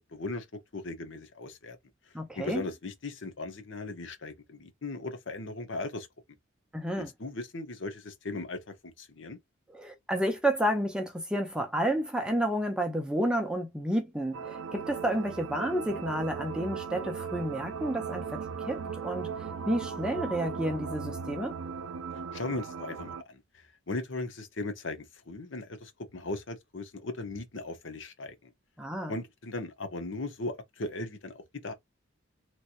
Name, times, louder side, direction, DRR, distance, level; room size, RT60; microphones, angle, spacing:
voice 1, 0.1-0.5 0.7-1.8 2.3-6.1 7.2-9.4 22.3-28.5 29.1-31.4 31.6-31.7, left 2 dB, 65° left, 0.9 m, -38 dB
voice 2, 2.1-2.6 6.7-7.1 9.7-19.3 19.7-21.6 28.8-29.1, right 1 dB, 5° right, 0.6 m, -30 dB
sound 1, 14.3-23.2, right 6 dB, 80° right, 0.4 m, -37 dB
3.2 x 2.8 x 2.5 m
head